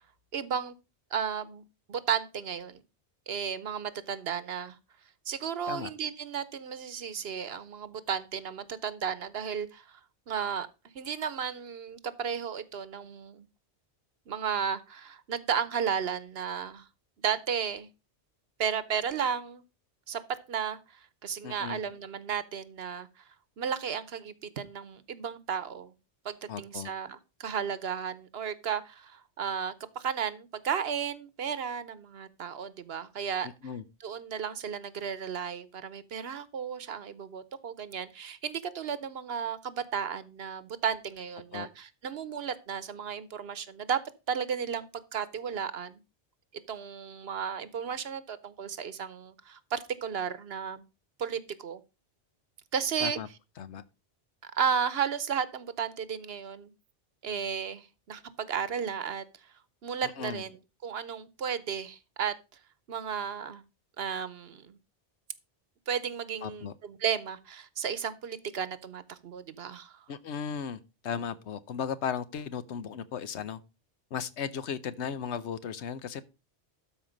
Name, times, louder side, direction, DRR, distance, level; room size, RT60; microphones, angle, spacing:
voice 1, 0.3-0.7 1.1-1.6 1.9-2.8 3.3-4.8 5.2-10.0 10.3-10.7 10.9-13.5 14.3-16.9 17.2-17.9 18.6-19.6 20.1-20.2 20.5-23.1 23.6-25.9 26.2-33.5 34.0-44.0 44.3-46.0 46.7-50.8 51.2-51.8 52.7-53.2 54.4-56.7 57.2-59.2 59.8-60.6 60.8-62.3 62.9-63.6 64.0-64.8 65.9-70.0, right 7 dB, 65° right, 1.0 m, -34 dB
voice 2, 21.4-21.8 26.5-26.9 33.6-33.8 41.5-41.7 53.0-53.3 53.6-53.8 60.0-60.4 66.4-66.7 70.1-73.6 74.1-76.2, left 7 dB, 85° left, 1.1 m, -36 dB
12.5 x 4.7 x 5.1 m
omnidirectional pair, 1.1 m